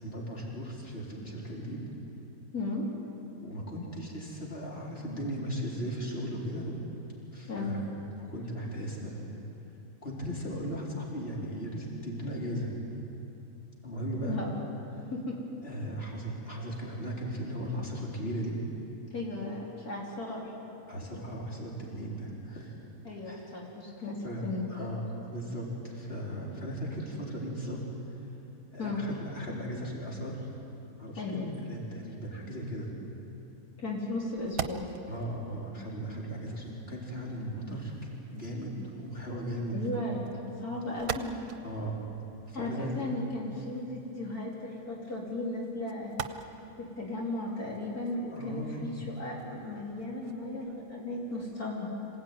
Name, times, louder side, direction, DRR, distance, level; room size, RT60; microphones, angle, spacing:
voice 1, 0.0-1.8 3.4-6.8 7.3-7.9 8.2-9.3 10.0-12.7 13.8-14.4 15.6-18.6 20.9-22.7 23.3-23.4 24.2-25.0 25.3-27.8 28.7-30.3 31.0-32.9 35.1-37.9 38.3-40.1 41.6-41.9 42.5-43.1 48.3-48.9, equal, 40° left, -4 dB, 4.3 m, -37 dB
voice 2, 2.5-2.9 7.5-7.7 14.2-14.5 15.1-15.4 19.1-20.5 23.1-24.7 28.8-29.0 31.2-31.5 33.8-34.9 39.7-41.4 42.5-46.1 46.8-51.9, left 2 dB, 75° left, -4 dB, 3.8 m, -36 dB
sound 1, 34.1-51.7, right 8 dB, 70° right, 1.3 m, -46 dB
26.5 x 17.0 x 9.4 m, 2.8 s
omnidirectional pair, 1.6 m